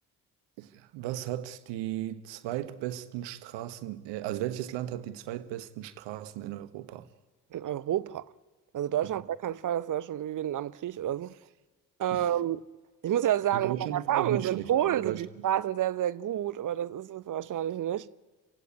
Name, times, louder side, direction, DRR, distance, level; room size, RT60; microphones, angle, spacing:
voice 1, 0.6-7.1 9.0-9.1 12.1-12.3 13.5-15.5, right 13 dB, 65° right, 1.4 m, -36 dB
voice 2, 7.5-8.3 8.7-11.3 12.0-12.6 13.0-18.1, right 11 dB, 40° right, 0.8 m, -29 dB
29.0 x 16.5 x 9.6 m
figure-of-eight pair, 40°, 47 cm